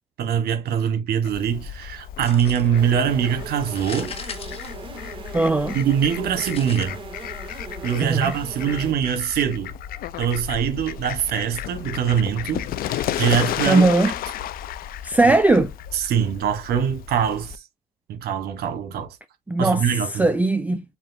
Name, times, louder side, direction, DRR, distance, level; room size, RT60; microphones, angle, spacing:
voice 1, 0.2-4.1 5.7-7.0 7.8-9.7 10.2-13.9 15.2-15.3 15.9-17.5 18.1-19.2 19.6-20.3, right 8 dB, 65° right, 1.2 m, -23 dB
Fowl, 1.2-17.6, left 11 dB, 60° left, 0.4 m, -33 dB
sound 1, 2.2-2.9 3.6-5.4 6.4-6.8, left 5 dB, 35° left, 1.1 m, -38 dB
sound 2, 2.7-8.9, right 3 dB, 30° right, 1.7 m, -39 dB
voice 2, 5.3-5.8 8.0-8.3 13.7-14.1 15.0-15.7 19.5-19.8 20.1-20.8, right 2 dB, 10° right, 0.4 m, -19 dB
7.2 x 2.5 x 2.6 m
cardioid pair, 110°, 17 cm